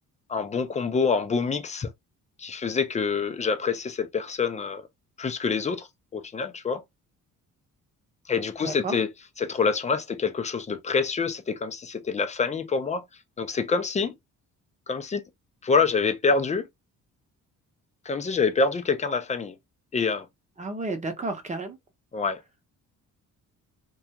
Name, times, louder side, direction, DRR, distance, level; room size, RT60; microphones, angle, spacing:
voice 1, 0.3-1.9 2.4-4.9 5.2-6.8 8.3-9.1 9.4-13.0 13.4-14.1 14.9-15.2 15.6-16.7 18.1-19.6 19.9-20.3 22.1-22.4, left 5 dB, 25° left, 0.4 m, -26 dB
voice 2, 8.6-9.0 20.6-21.8, right 2 dB, 25° right, 0.7 m, -31 dB
2.4 x 2.3 x 2.8 m
cardioid pair, 120°, 32 cm